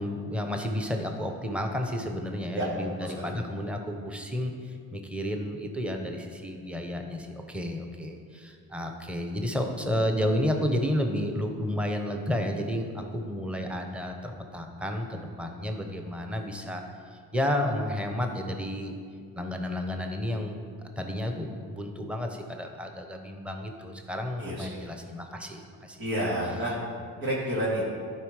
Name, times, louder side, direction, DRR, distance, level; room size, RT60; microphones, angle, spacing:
voice 1, 0.0-18.9 19.4-20.6 21.0-26.1, left 1 dB, 5° right, 3 dB, 1.0 m, -31 dB
voice 2, 24.4-24.8 26.0-26.7 27.2-27.8, right 1 dB, 80° right, -6 dB, 2.1 m, -29 dB
11.0 x 4.8 x 4.9 m, 2.1 s
cardioid pair, 70°, 36 cm